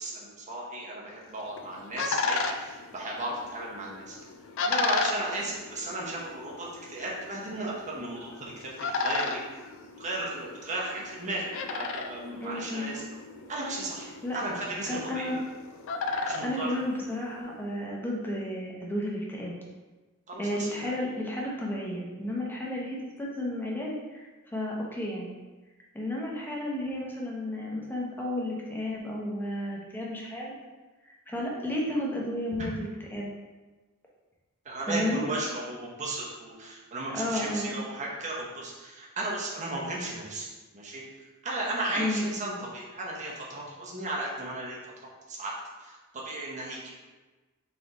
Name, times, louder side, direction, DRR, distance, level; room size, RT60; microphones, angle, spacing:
voice 1, 0.0-4.2 4.6-8.7 9.0-9.4 10.0-13.0 13.5-14.1 14.3-15.3 16.2-16.7 20.3-20.9 34.6-40.5 40.7-41.0 41.4-44.9 45.3-45.5 45.8-46.9, right 2 dB, 35° right, -4 dB, 0.9 m, -35 dB
sound 1, 1.3-17.6, left 4 dB, 60° left, 0.4 m, -35 dB
voice 2, 12.4-12.9 14.2-14.4 14.9-15.4 16.1-19.5 20.4-24.3 24.5-25.4 25.9-30.5 31.0-33.3 34.8-35.2 37.1-37.9 42.0-42.2, left 1 dB, 10° left, -3 dB, 0.7 m, -32 dB
3.7 x 3.4 x 4.0 m, 1.2 s
head